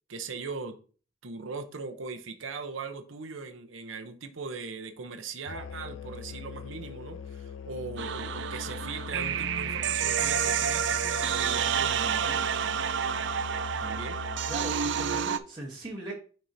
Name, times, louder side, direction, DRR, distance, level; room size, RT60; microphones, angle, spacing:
voice 1, 0.1-0.8 1.2-12.4 13.8-14.2, right 4 dB, 90° right, 0.8 m, -39 dB
Musical instrument, 5.5-15.3, left 6 dB, 80° left, 0.5 m, -41 dB
sound 1, 8.0-15.4, right 8 dB, 65° right, 0.4 m, -29 dB
voice 2, 14.5-16.1, right 2 dB, 20° right, 1.1 m, -39 dB
8.9 x 4.4 x 2.7 m
head